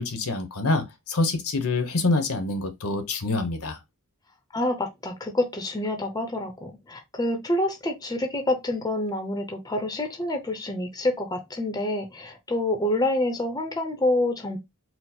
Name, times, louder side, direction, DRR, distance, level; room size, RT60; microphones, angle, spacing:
voice 1, 0.0-3.8, left 2 dB, 70° left, 0.9 m, -26 dB
voice 2, 4.5-14.6, left 1 dB, 15° left, 0.7 m, -27 dB
4.5 x 2.0 x 4.2 m
head